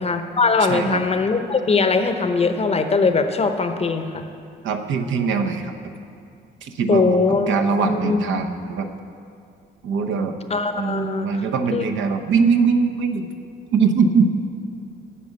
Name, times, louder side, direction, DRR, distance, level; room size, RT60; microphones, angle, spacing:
voice 1, 0.0-4.2 6.9-7.5 7.8-8.2 10.5-11.3 11.7-11.8, left 4 dB, 30° left, 7 dB, 0.7 m, -20 dB
voice 2, 0.6-1.0 4.6-5.7 6.6-7.2 7.5-8.9 9.8-10.4 10.8-13.3 13.7-14.3, right 5 dB, 75° right, 5 dB, 0.8 m, -21 dB
8.6 x 6.1 x 8.2 m, 2.4 s
cardioid pair, 90°, 20 cm